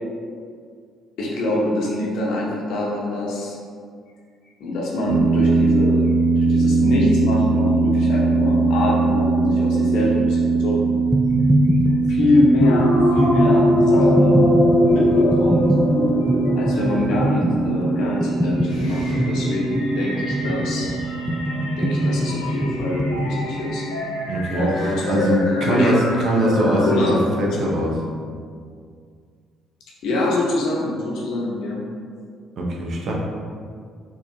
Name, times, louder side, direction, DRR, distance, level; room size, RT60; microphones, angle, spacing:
voice 1, 1.2-3.5 4.6-6.0 6.4-10.8 11.9-12.8 13.1-14.4 14.8-15.7 16.5-20.9 21.8-23.8 24.6-26.0 26.5-27.2 27.6-27.7 30.0-31.8, left 2 dB, 65° left, -4 dB, 0.9 m, -24 dB
sound 1, 5.1-23.5, right 4 dB, 80° right, 0.4 m, -22 dB
sound 2, 11.1-23.4, equal, 5° right, 0.4 m, -23 dB
sound 3, 12.6-27.2, left 2 dB, 80° left, 0.5 m, -24 dB
voice 2, 24.3-24.7 25.1-27.9 32.6-33.1, right 1 dB, 55° right, -2 dB, 0.7 m, -21 dB
4.5 x 2.8 x 2.7 m, 2.1 s
figure-of-eight pair, 50°, 0 cm